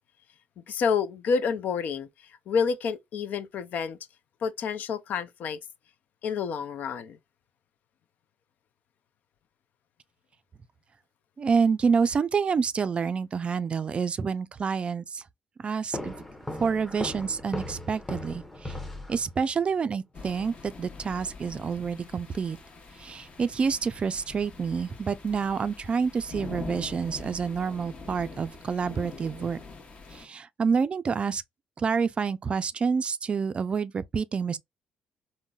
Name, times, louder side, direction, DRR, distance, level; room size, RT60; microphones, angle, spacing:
voice 1, 0.7-2.1 2.5-4.0 4.4-5.6 6.2-7.2, left 6 dB, 65° left, 0.4 m, -28 dB
voice 2, 11.4-15.2 15.6-16.1 16.6-18.4 19.1-22.6 23.0-29.6 30.2-31.4 31.8-34.6, right 5 dB, 40° right, 0.3 m, -28 dB
sound 1, 15.9-19.6, left 1 dB, 10° left, 0.7 m, -37 dB
sound 2, 20.1-30.3, left 4 dB, 40° left, 0.9 m, -44 dB
3.7 x 2.1 x 2.3 m
cardioid pair, 95°, 3 cm